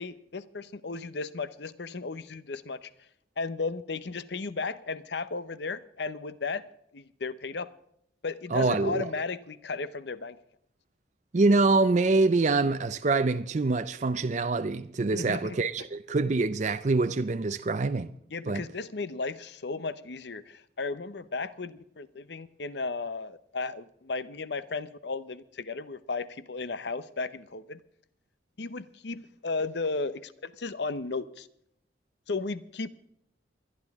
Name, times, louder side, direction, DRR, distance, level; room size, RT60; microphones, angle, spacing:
voice 1, 0.0-2.9 3.4-6.6 6.9-7.7 8.2-10.4 15.1-15.6 18.3-27.8 28.6-31.5 32.3-32.9, left 4 dB, 65° left, 0.7 m, -35 dB
voice 2, 8.5-9.1 11.3-18.1 18.5-18.6, right 3 dB, 40° right, 0.5 m, -25 dB
28.0 x 11.0 x 3.6 m
head